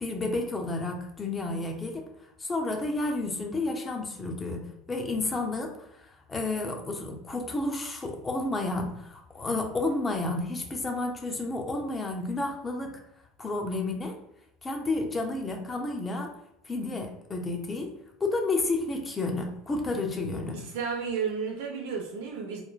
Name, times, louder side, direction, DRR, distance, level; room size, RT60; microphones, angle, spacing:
voice 1, 0.0-2.1 2.4-13.0 13.4-14.2 14.6-16.3 16.6-20.6, left 2 dB, 20° left, 3 dB, 0.5 m, -31 dB
voice 2, 20.5-22.6, right 6 dB, 80° right, 0 dB, 0.6 m, -32 dB
3.1 x 2.0 x 2.3 m, 0.78 s
supercardioid pair, 105°, 0 cm